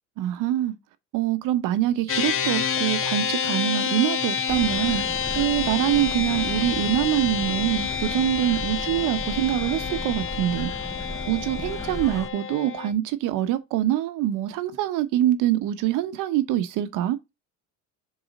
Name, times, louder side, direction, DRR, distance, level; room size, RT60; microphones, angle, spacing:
voice 1, 0.2-0.8 1.1-5.0 5.3-10.7 11.3-17.2, right 13 dB, 70° right, 0.9 m, -24 dB
sound 1, 2.1-12.9, left 7 dB, 40° left, 1.1 m, -28 dB
sound 2, 4.5-12.3, left 2 dB, 10° left, 0.5 m, -36 dB
4.7 x 4.0 x 5.1 m
supercardioid pair, 100°, 33 cm